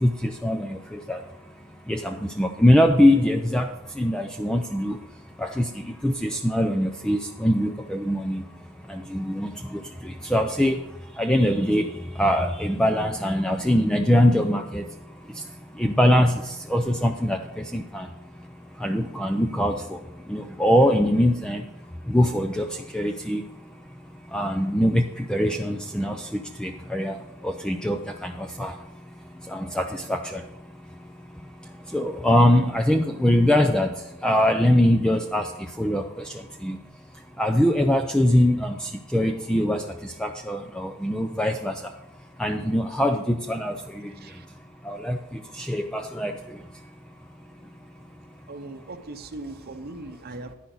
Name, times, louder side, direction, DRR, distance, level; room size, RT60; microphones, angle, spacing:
voice 1, 0.0-1.2 1.9-5.0 5.4-8.4 8.9-10.8 11.2-11.9 12.2-14.9 15.8-17.4 17.7-18.1 18.8-20.0 20.3-21.6 22.1-22.7 22.9-23.4 24.3-27.2 27.4-28.7 29.5-30.4 31.9-33.9 34.2-35.5 35.8-36.2 36.6-36.8 37.4-39.8 40.2-41.8 42.4-44.1 44.9-45.2 45.6-46.3, left 1 dB, 5° left, 0.4 m, -22 dB
voice 2, 48.5-50.5, right 2 dB, 45° right, 0.8 m, -39 dB
10.5 x 10.0 x 3.9 m
head